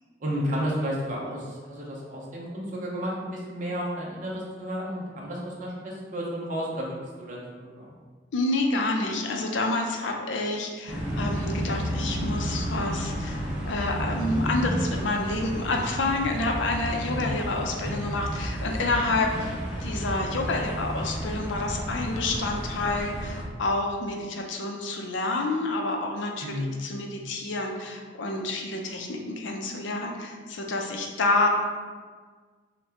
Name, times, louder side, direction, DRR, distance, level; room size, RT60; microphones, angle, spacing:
voice 1, 0.2-7.9 17.1-17.4 26.4-26.9, equal, 45° right, -4 dB, 0.7 m, -32 dB
voice 2, 8.3-19.5 19.8-31.5, left 2 dB, 85° left, 2 dB, 0.5 m, -28 dB
sound 1, 10.9-23.4, equal, 5° right, 0.9 m, -32 dB
5.7 x 2.2 x 2.8 m, 1.5 s
head